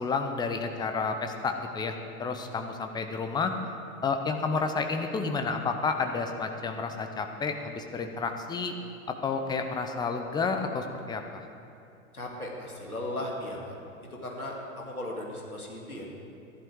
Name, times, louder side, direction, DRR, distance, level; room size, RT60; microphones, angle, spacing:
voice 1, 0.0-3.5 4.0-8.7 9.1-11.4, left 4 dB, 10° left, 5 dB, 0.7 m, -30 dB
voice 2, 12.1-13.8 14.2-16.1, left 1 dB, 85° left, -1 dB, 2.4 m, -36 dB
14.5 x 11.0 x 4.7 m, 2.7 s
figure-of-eight pair, 95°, 43 cm